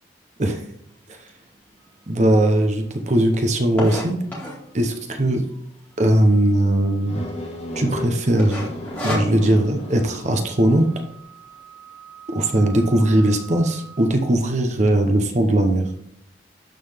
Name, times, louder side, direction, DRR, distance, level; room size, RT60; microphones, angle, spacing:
sound 1, 1.3-1.4 2.0-2.1 2.2-2.3 2.6-4.7 5.4-5.8 6.1-6.2 6.4-6.5 7.1-7.4 7.7-8.0 8.4-9.7, equal, 10° left, 2.0 m, -29 dB
sound 2, 1.8-2.1 5.8-14.1, right 8 dB, 80° right, 1.3 m, -47 dB
voice 1, 2.1-4.2 4.7-5.4 6.0-7.2 7.8-8.7 9.0-10.9 12.3-15.9, right 1 dB, 40° right, 5 dB, 0.8 m, -19 dB
sound 3, 7.0-11.1, left 1 dB, 35° left, 1.4 m, -34 dB
11.5 x 3.9 x 3.4 m, 0.72 s
head